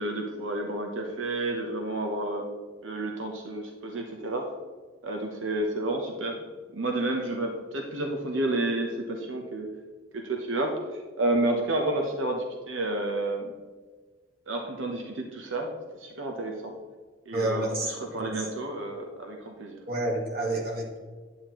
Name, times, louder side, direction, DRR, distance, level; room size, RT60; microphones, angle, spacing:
voice 1, 0.0-2.5 2.8-4.5 5.0-6.4 6.7-9.7 10.1-10.7 11.2-13.5 14.5-15.7 16.0-16.7 17.3-19.8, right 2 dB, 90° right, 2 dB, 0.9 m, -30 dB
voice 2, 17.3-18.3 19.9-21.0, right 1 dB, 50° right, 0 dB, 1.6 m, -29 dB
9.4 x 8.7 x 3.0 m, 1.4 s
head